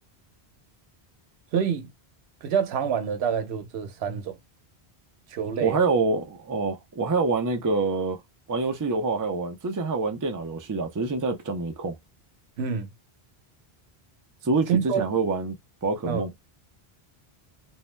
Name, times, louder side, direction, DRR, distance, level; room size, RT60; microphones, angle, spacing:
voice 1, 1.5-1.9 2.4-4.4 5.3-5.8 12.6-12.9 14.7-15.0 16.1-16.3, right 7 dB, 90° right, 0.9 m, -27 dB
voice 2, 5.6-8.2 8.5-12.0 14.4-15.6 15.8-16.3, right 3 dB, 30° right, 0.4 m, -26 dB
2.6 x 2.0 x 3.1 m
omnidirectional pair, 1.0 m